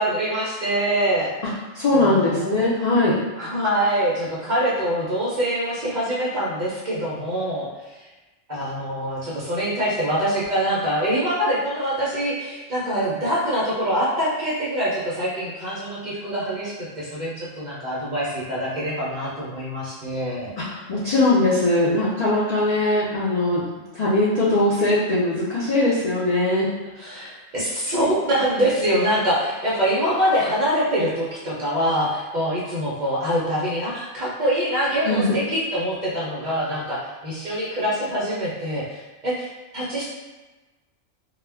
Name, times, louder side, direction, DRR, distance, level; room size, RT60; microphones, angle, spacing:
voice 1, 0.0-1.3 1.9-2.7 3.4-8.0 8.5-20.5 27.0-39.5 39.7-40.0, equal, 55° right, -7 dB, 0.5 m, -24 dB
voice 2, 1.7-3.2 20.6-23.6 23.9-26.7 35.1-35.4, left 2 dB, 70° left, -7 dB, 0.3 m, -20 dB
2.2 x 2.1 x 3.3 m, 1.2 s
omnidirectional pair, 1.3 m